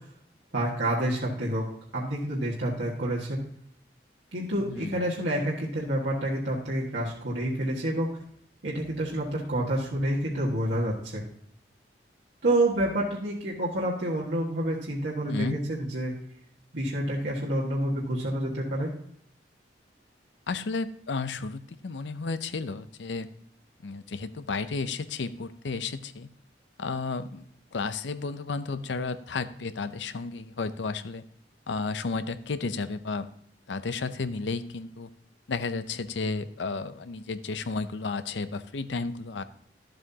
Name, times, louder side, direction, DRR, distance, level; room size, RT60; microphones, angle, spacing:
voice 1, 0.5-1.7 1.9-3.4 4.3-8.2 8.6-11.2 12.4-16.1 16.7-18.9, right 1 dB, 80° right, -5 dB, 1.6 m, -28 dB
voice 2, 4.7-5.1 15.3-15.6 20.5-23.3 23.8-26.3 26.8-31.2 31.7-33.3 33.7-35.1 35.5-39.4, left 4 dB, 85° left, 12 dB, 0.6 m, -32 dB
12.0 x 7.8 x 2.8 m, 0.68 s
head